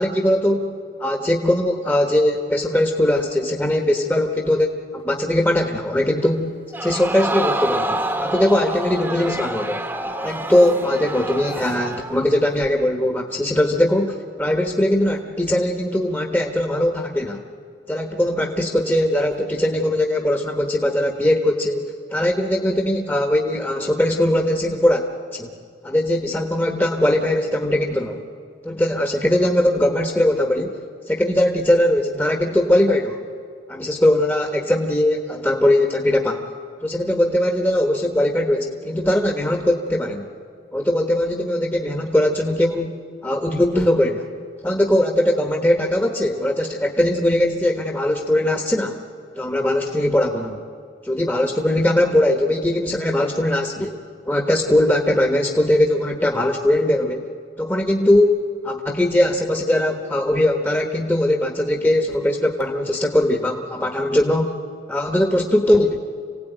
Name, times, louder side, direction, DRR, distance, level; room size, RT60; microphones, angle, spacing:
voice 1, 0.0-6.5 6.8-9.8 10.2-17.4 17.9-25.0 25.3-25.5 25.8-28.2 28.6-30.8 31.1-33.2 33.7-36.4 36.8-40.3 40.7-43.0 43.2-44.3 44.6-49.0 49.4-50.6 51.0-54.0 54.3-57.2 57.6-64.5 64.9-66.0, left 1 dB, 10° left, 2 dB, 1.3 m, -20 dB
Crowd, 6.7-12.2 12.6-12.7, right 1 dB, 10° right, 1.1 m, -27 dB
26.5 x 17.0 x 9.2 m, 2.2 s
head